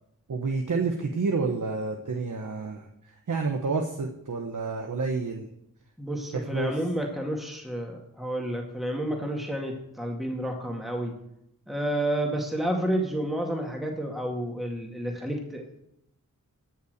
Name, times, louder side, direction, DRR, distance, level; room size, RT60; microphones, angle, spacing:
voice 1, 0.3-2.9 3.3-5.5 6.3-6.8, right 4 dB, 60° right, 3 dB, 1.1 m, -29 dB
voice 2, 6.0-11.1 11.7-15.8, right 1 dB, ahead, 1 dB, 2.1 m, -30 dB
14.5 x 5.7 x 6.7 m, 0.80 s
wide cardioid pair, 55°, 35 cm